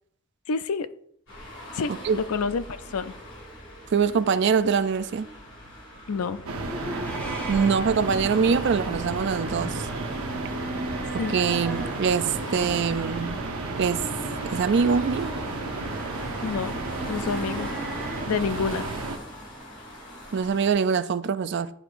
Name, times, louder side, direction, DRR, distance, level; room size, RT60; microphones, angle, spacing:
voice 1, 0.5-0.9 1.7-1.9 2.3-3.1 6.1-6.5 11.2-11.4 16.4-16.8 17.1-17.7 18.3-18.8, left 5 dB, 80° left, 0.4 m, -28 dB
sound 1, 1.3-20.7, equal, 60° left, 2.1 m, -42 dB
voice 2, 1.9-2.2 3.9-5.3 7.5-9.9 11.1-13.3 13.7-14.0 14.4-15.3 20.3-21.7, right 6 dB, 55° right, 0.3 m, -24 dB
sound 2, 6.4-18.2, equal, 10° left, 1.1 m, -39 dB
sound 3, 6.5-19.2, right 3 dB, 85° right, 0.8 m, -33 dB
11.0 x 4.7 x 2.5 m
head